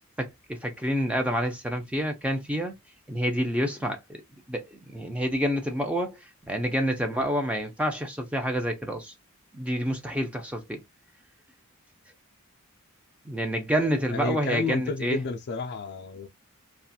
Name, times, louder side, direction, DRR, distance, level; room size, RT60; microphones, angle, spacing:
voice 1, 0.2-2.7 3.1-4.2 4.5-6.2 6.5-9.1 9.5-10.8 13.3-15.2, equal, 5° right, 0.5 m, -28 dB
voice 2, 14.1-16.3, left 3 dB, 50° left, 0.4 m, -31 dB
2.5 x 2.3 x 2.6 m
head